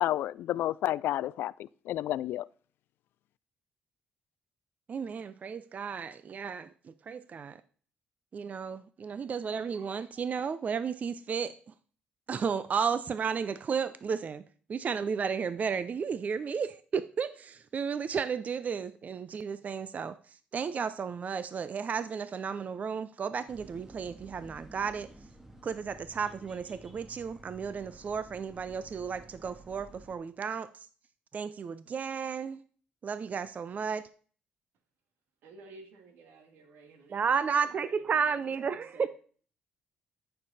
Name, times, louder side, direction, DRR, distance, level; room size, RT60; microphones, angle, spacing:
voice 1, 0.0-2.5, left 13 dB, 80° left, 0.3 m, -30 dB
voice 2, 4.9-7.6 8.3-11.7 12.3-25.1 25.6-30.9 31.3-32.6 33.0-34.1 37.1-39.1, right 6 dB, 45° right, 0.6 m, -33 dB
sound 1, 23.5-30.2, right 1 dB, 10° right, 1.8 m, -52 dB
voice 3, 35.4-37.3 38.1-39.1, right 3 dB, 80° right, 2.2 m, -53 dB
14.0 x 6.7 x 4.2 m
cardioid pair, 80°, 4 cm